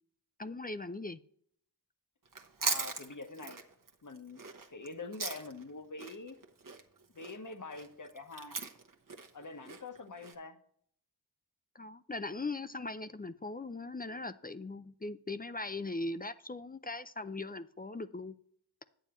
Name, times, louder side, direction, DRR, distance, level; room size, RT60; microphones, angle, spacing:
voice 1, 0.4-1.2 11.8-18.3, left 2 dB, 25° left, 12 dB, 0.4 m, -40 dB
Chewing mastication, 2.3-5.7 6.0-10.3, right 4 dB, 50° right, 1.1 m, -39 dB
voice 2, 2.6-3.6 4.0-4.4 4.7-6.3 7.1-8.6 9.3-10.6, left 3 dB, 50° left, 7 dB, 1.1 m, -45 dB
9.0 x 8.9 x 3.0 m, 0.64 s
wide cardioid pair, 50°, 40 cm